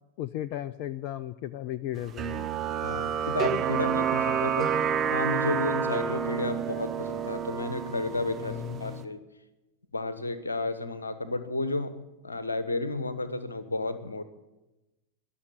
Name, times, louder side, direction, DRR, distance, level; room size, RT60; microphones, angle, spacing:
voice 1, 0.2-2.5 4.3-4.4 8.4-9.1, left 12 dB, 45° left, 17 dB, 0.4 m, -35 dB
sound 1, 2.2-9.0, right 7 dB, 25° right, 1.1 m, -29 dB
voice 2, 2.8-8.5 8.8-9.2 9.9-12.0 12.2-14.3, left 2 dB, 75° left, 13 dB, 1.2 m, -32 dB
21.5 x 7.2 x 9.2 m, 1.0 s
figure-of-eight pair, 90°, 0 cm